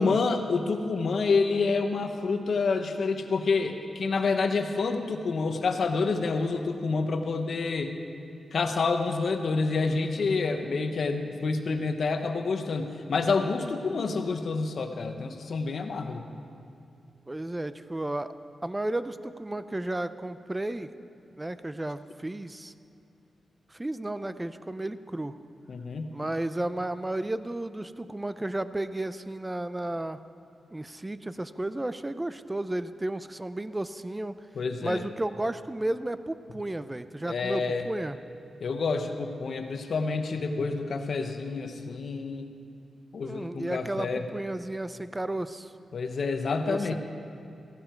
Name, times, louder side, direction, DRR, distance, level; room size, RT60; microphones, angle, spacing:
voice 1, 0.0-7.9 8.5-16.2 25.7-26.3 34.5-35.0 37.2-37.9 38.6-42.5 43.1-44.3 45.9-46.9, left 4 dB, 60° left, 6 dB, 1.1 m, -28 dB
voice 2, 17.3-18.3 18.6-20.9 21.4-22.7 23.7-25.3 26.1-30.2 30.7-34.3 34.8-38.2 43.2-45.7 46.6-46.9, right 1 dB, 15° right, 12 dB, 0.5 m, -33 dB
16.5 x 15.5 x 4.6 m, 2.5 s
wide cardioid pair, 105°, 0 cm